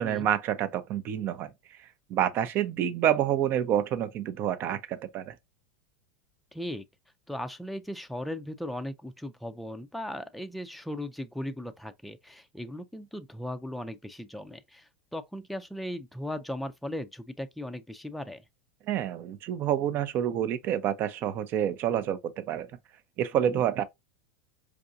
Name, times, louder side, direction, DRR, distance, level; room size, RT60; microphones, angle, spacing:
voice 1, 0.0-5.4 18.9-22.7 23.2-23.8, right 10 dB, 45° right, 0.6 m, -28 dB
voice 2, 6.5-6.8 7.3-18.4 23.4-23.6, left 1 dB, ahead, 0.4 m, -37 dB
4.7 x 2.5 x 2.5 m
hypercardioid pair, 105°, 5 cm